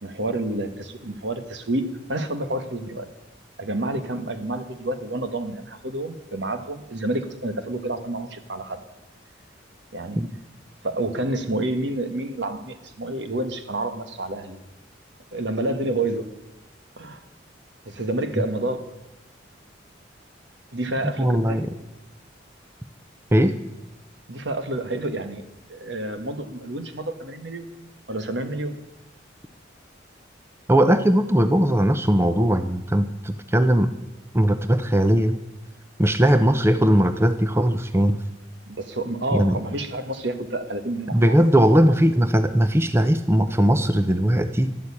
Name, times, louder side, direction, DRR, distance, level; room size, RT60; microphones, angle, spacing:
voice 1, 0.0-3.1 3.6-8.8 9.9-10.2 10.8-14.6 15.3-16.3 17.0-17.2 17.8-18.8 20.7-21.6 24.3-25.4 25.7-27.7 28.1-28.8 38.7-41.4, right 1 dB, 70° right, 9 dB, 1.5 m, -29 dB
voice 2, 21.2-21.7 23.3-23.6 30.7-33.9 34.3-35.4 36.0-38.2 39.3-39.6 41.1-44.7, equal, 15° right, 9 dB, 0.6 m, -19 dB
12.5 x 12.0 x 8.7 m, 0.95 s
head